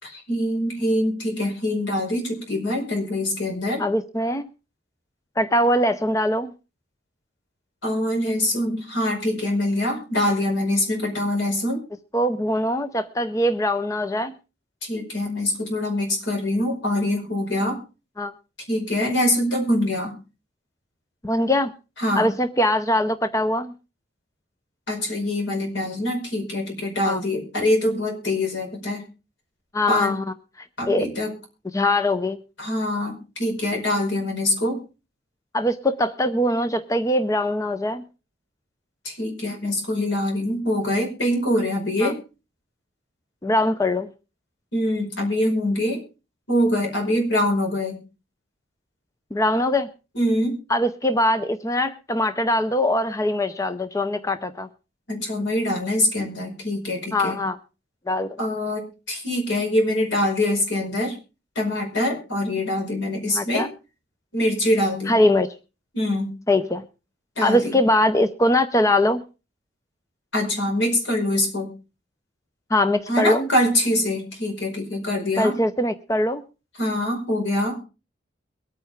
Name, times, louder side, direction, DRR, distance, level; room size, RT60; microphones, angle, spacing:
voice 1, 0.0-3.8 7.8-11.8 14.8-17.8 18.7-20.1 22.0-22.3 24.9-29.0 29.9-30.2 30.8-31.3 32.6-34.8 39.0-42.2 44.7-46.0 46.5-48.0 50.1-50.6 55.1-57.4 58.4-61.1 61.5-63.7 64.3-65.1 65.9-66.3 67.4-67.8 70.3-71.7 73.1-75.5 76.8-77.8, left 1 dB, 80° left, 2 dB, 5.0 m, -24 dB
voice 2, 3.8-4.5 5.4-6.5 12.1-14.3 18.2-18.3 21.2-21.7 22.2-23.7 27.0-27.2 29.7-30.2 30.9-31.1 31.7-32.4 35.5-38.0 42.0-42.1 43.4-44.1 49.3-49.9 50.7-54.7 57.1-57.6 58.1-58.4 63.3-63.7 65.1-65.5 66.5-66.8 67.4-69.2 72.7-73.5 75.4-76.4, left 1 dB, 15° left, 10 dB, 0.6 m, -22 dB
23.0 x 9.0 x 3.5 m, 0.31 s
head